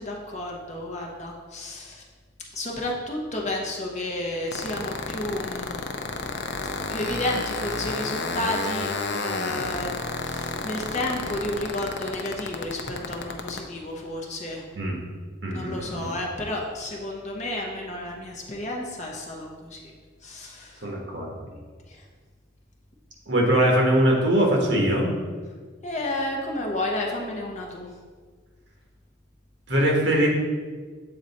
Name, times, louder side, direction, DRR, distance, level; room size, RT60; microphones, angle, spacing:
voice 1, 0.0-2.0 2.5-5.8 6.9-9.9 10.2-14.6 15.5-19.9 20.2-20.9 21.5-21.6 21.9-22.0 25.8-27.9, left 1 dB, 35° left, -1 dB, 0.9 m, -31 dB
sound 1, 4.5-13.6, left 4 dB, 60° left, 0.5 m, -30 dB
voice 2, 15.4-16.1 20.8-21.3 23.3-25.1 29.7-30.3, right 1 dB, 65° right, -1 dB, 1.3 m, -22 dB
7.8 x 3.9 x 4.2 m, 1.5 s
head